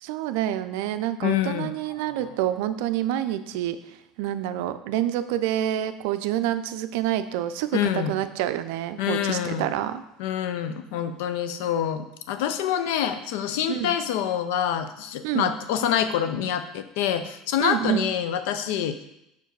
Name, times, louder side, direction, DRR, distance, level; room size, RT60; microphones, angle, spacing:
voice 1, 0.0-3.8 4.2-10.0 13.7-14.0 15.2-15.5 17.6-18.1, right 12 dB, 70° right, 11 dB, 0.4 m, -27 dB
voice 2, 1.2-1.7 7.7-8.1 9.0-9.7 10.2-19.0, left 9 dB, 70° left, 10 dB, 0.5 m, -26 dB
5.2 x 4.5 x 4.6 m, 0.83 s
hypercardioid pair, 75°, 0 cm